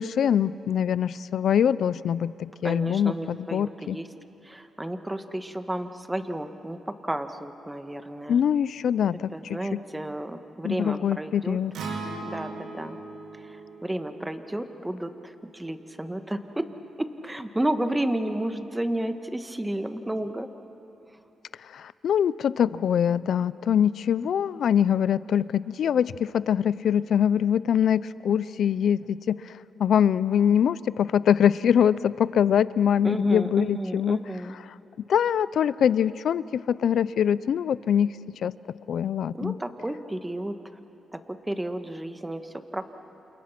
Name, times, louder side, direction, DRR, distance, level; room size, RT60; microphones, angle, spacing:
voice 1, 0.0-4.0 8.3-9.8 10.6-11.7 21.7-29.4 29.8-34.2 35.1-38.1 38.4-38.5 38.9-39.5, left 8 dB, 75° left, 18 dB, 0.5 m, -23 dB
voice 2, 2.6-4.1 4.4-8.4 9.3-11.6 12.3-13.0 13.5-16.7 17.0-20.5 33.0-34.5 39.3-40.6 41.1-42.9, right 1 dB, 10° right, 8 dB, 1.7 m, -32 dB
Acoustic guitar, 11.7-16.0, right 3 dB, 85° right, 3.0 m, -39 dB
29.5 x 28.0 x 6.0 m, 2.9 s
cardioid pair, 70°, 0 cm